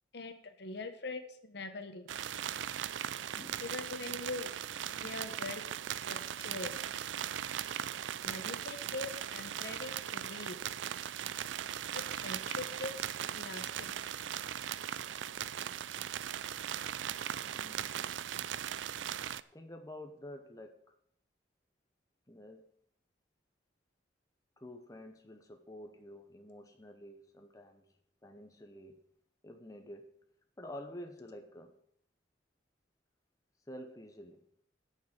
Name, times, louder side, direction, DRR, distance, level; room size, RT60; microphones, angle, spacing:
voice 1, 0.1-2.1 3.6-4.5 4.9-5.6 6.0-7.1 8.2-10.6 11.9-12.9 13.3-14.1, left 3 dB, 60° left, 7 dB, 1.2 m, -43 dB
sound 1, 2.1-19.4, right 10 dB, 75° right, 0.4 m, -39 dB
voice 2, 17.4-18.0 19.1-19.2 19.5-20.8 22.3-22.6 24.6-27.8 28.2-29.0 29.4-30.1 30.6-31.7 33.7-34.4, left 1 dB, 20° left, 4 dB, 0.8 m, -49 dB
9.3 x 6.6 x 8.0 m, 0.67 s
head